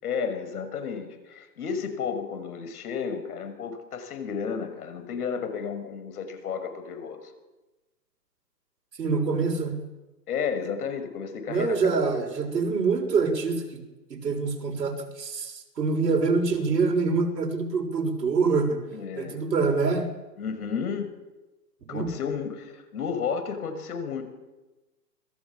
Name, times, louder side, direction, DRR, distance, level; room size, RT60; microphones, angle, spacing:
voice 1, 0.0-7.3 10.3-12.0 18.9-19.4 20.4-21.1 21.9-24.2, left 6 dB, 60° left, 8 dB, 6.4 m, -32 dB
voice 2, 9.0-9.8 11.5-13.8 14.1-18.8 19.2-20.1 21.9-22.1, right 4 dB, 75° right, 3 dB, 6.6 m, -25 dB
27.0 x 22.0 x 7.4 m, 1.1 s
hypercardioid pair, 130°, 50 cm